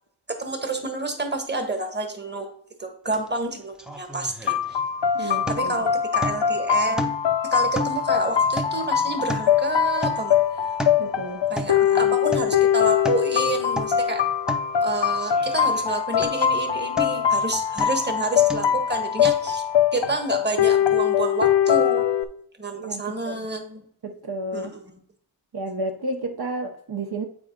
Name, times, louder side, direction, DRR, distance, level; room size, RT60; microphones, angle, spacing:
voice 1, 0.3-2.5 2.8-4.8 5.2-7.0 7.5-10.4 11.5-14.2 14.8-19.6 19.9-22.1 22.6-23.8 24.5-25.0, right 2 dB, 20° right, 1.3 m, -29 dB
sound 1, 3.1-3.3 3.5-5.0 5.5-5.8 6.2-6.6 7.0-7.4 7.7-9.6 10.0-10.3 10.6-11.1 11.6-11.8 12.3-12.6 12.9-13.3 13.7-14.0 14.5-14.7 15.2-15.9 16.2-16.5 17.0-17.3 17.8-18.1 18.5-18.8 19.2-19.3, equal, ahead, 0.7 m, -32 dB
sound 2, 4.5-22.2, left 9 dB, 65° left, 0.7 m, -22 dB
voice 2, 5.1-5.8 11.0-11.4 11.8-12.2 22.8-23.5 24.0-24.7 25.5-27.2, right 2 dB, 50° right, 0.9 m, -32 dB
8.4 x 3.6 x 5.1 m
wide cardioid pair, 105°, 48 cm